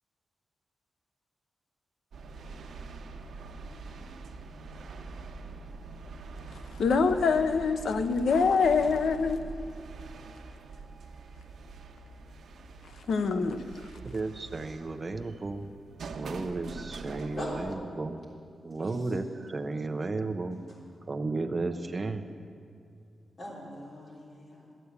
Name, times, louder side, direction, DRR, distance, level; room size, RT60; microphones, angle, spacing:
sound 1, 2.1-17.7, right 3 dB, 80° right, 0.9 m, -44 dB
voice 1, 6.8-9.4 13.1-13.6, left 5 dB, 85° left, 9 dB, 0.7 m, -25 dB
voice 2, 14.0-15.7 16.1-18.2 18.6-20.7 21.1-22.3, right 3 dB, 25° right, 8 dB, 0.6 m, -34 dB
voice 3, 23.4-24.7, left 1 dB, 40° left, -4 dB, 3.5 m, -40 dB
13.5 x 8.3 x 8.1 m, 2.4 s
wide cardioid pair, 170°, 0 cm